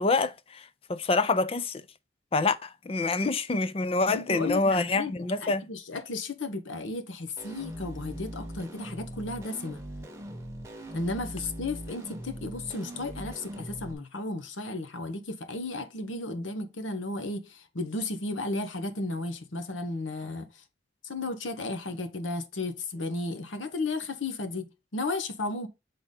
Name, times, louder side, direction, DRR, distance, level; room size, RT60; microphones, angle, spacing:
voice 1, 0.0-1.8 2.3-5.6, left 3 dB, 30° left, 0.4 m, -26 dB
voice 2, 4.1-9.8 10.9-20.5 21.0-25.7, left 2 dB, 85° left, 1.0 m, -34 dB
sound 1, 7.4-13.9, equal, 15° right, 1.0 m, -41 dB
6.9 x 3.8 x 3.8 m
head